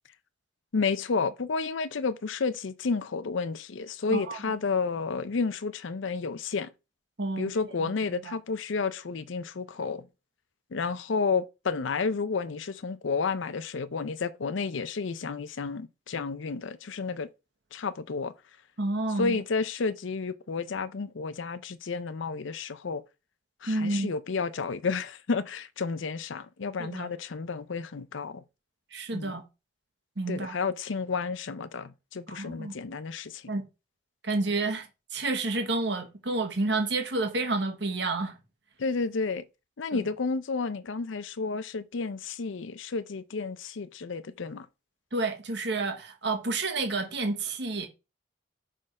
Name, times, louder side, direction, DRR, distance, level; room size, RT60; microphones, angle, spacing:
voice 1, 0.7-6.7 7.4-10.1 10.7-17.3 17.7-18.3 19.2-23.0 23.6-28.4 29.1-29.4 30.3-33.5 38.8-39.4 39.8-44.7, left 4 dB, 75° left, 0.5 m, -31 dB
voice 2, 7.2-7.9 8.2-8.3 18.8-19.4 23.7-24.1 26.8-27.1 28.9-29.4 30.2-30.6 32.3-32.7 33.5-33.6 34.2-38.4 39.9-40.1 45.1-47.9, right 3 dB, 60° right, 1.4 m, -30 dB
6.4 x 3.8 x 5.3 m
head